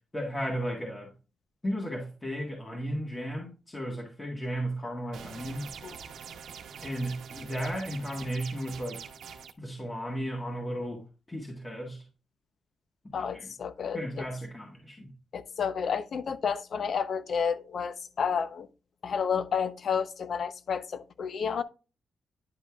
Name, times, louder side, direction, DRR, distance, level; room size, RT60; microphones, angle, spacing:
voice 1, 0.1-1.1 1.6-5.7 6.8-9.0 9.6-11.0 11.3-12.0 13.3-13.5 13.9-15.1, equal, 20° left, 1.7 m, -34 dB
sound 1, 5.1-9.5, right 7 dB, 90° right, 0.8 m, -44 dB
voice 2, 13.1-14.3 15.3-18.7 19.0-21.6, left 6 dB, 60° left, 0.7 m, -31 dB
10.0 x 5.3 x 2.4 m
wide cardioid pair, 120°, 0 cm